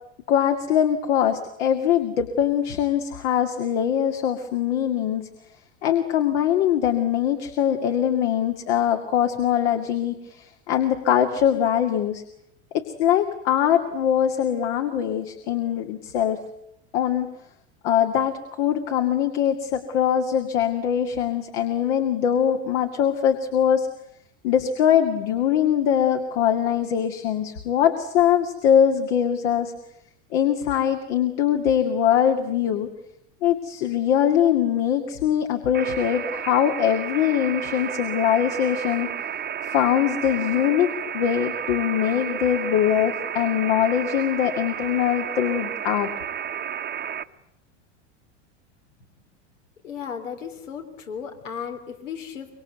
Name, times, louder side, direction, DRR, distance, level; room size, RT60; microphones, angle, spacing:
voice 1, 0.3-5.3 5.8-12.2 12.7-16.4 16.9-17.3 17.8-23.9 24.4-29.7 30.3-32.9 33.4-39.1 39.6-46.1, left 9 dB, 70° left, 5 dB, 2.4 m, -22 dB
sound 1, 35.7-47.2, right 9 dB, 30° right, 1.1 m, -32 dB
voice 2, 49.8-52.5, left 7 dB, 90° left, 5 dB, 3.6 m, -35 dB
25.0 x 23.5 x 8.2 m, 0.79 s
hypercardioid pair, 95°, 36 cm